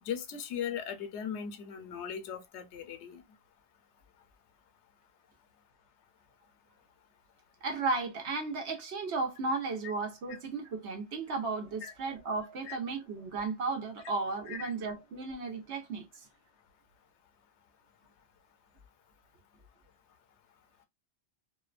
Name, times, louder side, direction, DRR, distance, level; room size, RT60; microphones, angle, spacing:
voice 1, 0.0-3.2 11.8-11.9 12.7-12.8 14.5-14.7, left 8 dB, 80° left, 0.9 m, -38 dB
voice 2, 7.6-16.3, right 3 dB, 75° right, 1.1 m, -34 dB
2.6 x 2.1 x 2.4 m
omnidirectional pair, 1.2 m